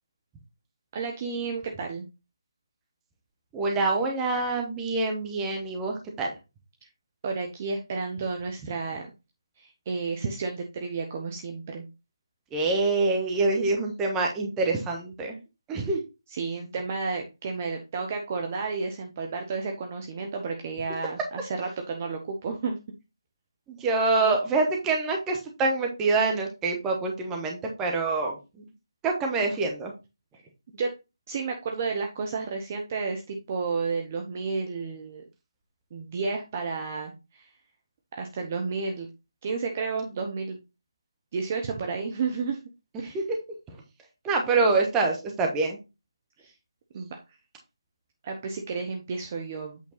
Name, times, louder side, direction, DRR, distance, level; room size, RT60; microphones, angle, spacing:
voice 1, 0.9-2.1 7.2-9.1 9.6-11.8 16.3-22.8 30.7-30.9 31.3-35.2 35.9-37.5 38.1-39.1 39.4-40.6 41.3-42.6 43.0-43.2 46.4-46.5 46.9-47.2 48.2-49.8, right 4 dB, 30° right, 3 dB, 1.0 m, -31 dB
voice 2, 3.5-6.3 12.5-15.4 15.7-16.0 23.7-28.4 29.0-29.9 43.1-43.2 44.2-45.8, right 3 dB, 10° right, 1 dB, 1.4 m, -25 dB
8.4 x 4.5 x 4.0 m, 0.26 s
figure-of-eight pair, 155°, 2 cm